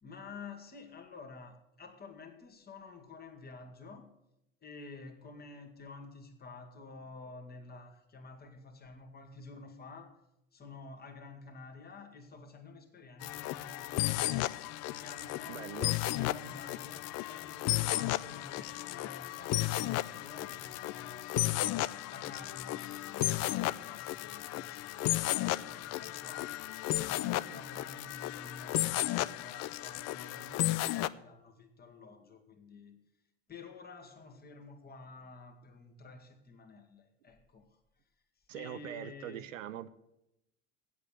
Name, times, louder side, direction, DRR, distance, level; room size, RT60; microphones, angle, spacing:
voice 1, 0.0-4.2 4.6-10.2 10.5-15.8 16.1-26.6 26.9-33.0 33.5-37.8 38.5-39.6, left 3 dB, 25° left, 2.1 m, -50 dB
sound 1, 13.2-31.1, left 16 dB, 45° left, 0.5 m, -34 dB
voice 2, 15.5-16.0 38.5-39.9, right 12 dB, 80° right, 0.7 m, -42 dB
8.5 x 8.2 x 9.1 m
hypercardioid pair, 80°, 38 cm